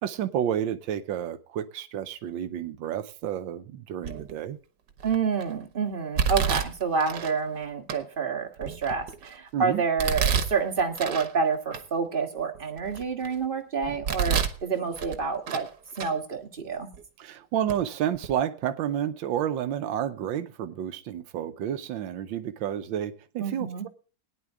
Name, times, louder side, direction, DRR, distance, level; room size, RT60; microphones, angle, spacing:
voice 1, 0.0-4.6 9.5-9.8 17.2-23.9, right 10 dB, 85° right, 1.6 m, -30 dB
Domestic sounds home sounds, 4.0-4.4 5.0-5.4 6.2-7.3 7.9-8.0 8.6-9.3 10.0-11.3 11.7-11.8 12.4-13.3 13.8-14.6 15.0-15.7 16.0-16.1 16.9-17.0 17.7-17.8 18.1-18.3, right 7 dB, 65° right, 1.7 m, -29 dB
voice 2, 5.0-15.7 16.0-16.9 23.4-23.9, right 5 dB, 30° right, 1.5 m, -28 dB
18.0 x 10.0 x 3.6 m
omnidirectional pair, 2.0 m